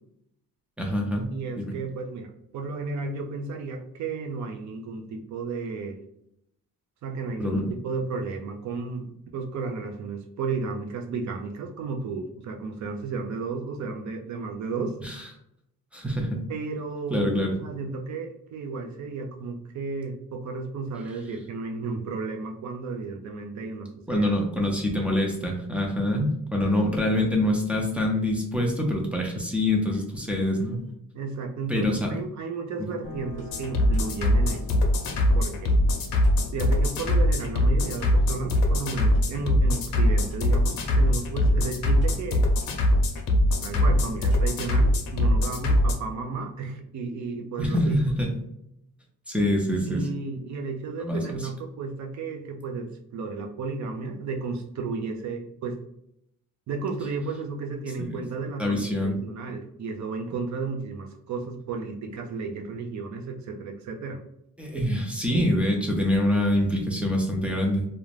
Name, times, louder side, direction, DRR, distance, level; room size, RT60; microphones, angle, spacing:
voice 1, 0.8-1.7 7.4-7.7 15.0-15.2 15.9-16.4 17.1-17.6 24.1-30.9 31.7-32.1 47.6-48.3 49.3-50.0 51.0-51.2 58.0-58.2 58.6-59.2 64.6-67.9, left 1 dB, 5° right, -1 dB, 0.3 m, -25 dB
voice 2, 1.3-6.0 7.0-15.0 16.5-24.3 31.1-34.6 35.3-35.8 36.5-42.4 43.6-48.0 49.8-55.8 56.7-64.2, right 4 dB, 60° right, 3 dB, 0.5 m, -33 dB
sound 1, 33.0-44.5, left 1 dB, 35° right, 0.8 m, -45 dB
sound 2, 33.5-46.0, left 1 dB, 80° left, 0.6 m, -22 dB
2.4 x 2.1 x 3.1 m, 0.77 s
wide cardioid pair, 170°, 34 cm